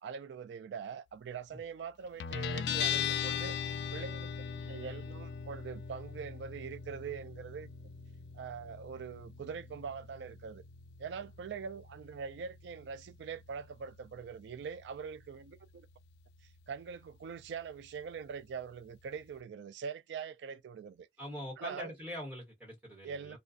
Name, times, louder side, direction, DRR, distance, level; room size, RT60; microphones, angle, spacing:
voice 1, 0.0-3.6 3.9-7.7 8.3-10.6 11.0-15.9 16.7-21.1 21.6-21.9 23.0-23.4, right 6 dB, 75° right, 0.3 m, -43 dB
Guitar, 2.2-19.4, left 7 dB, 70° left, 0.3 m, -41 dB
voice 2, 21.2-23.4, equal, 10° right, 1.2 m, -43 dB
2.5 x 2.3 x 2.4 m
head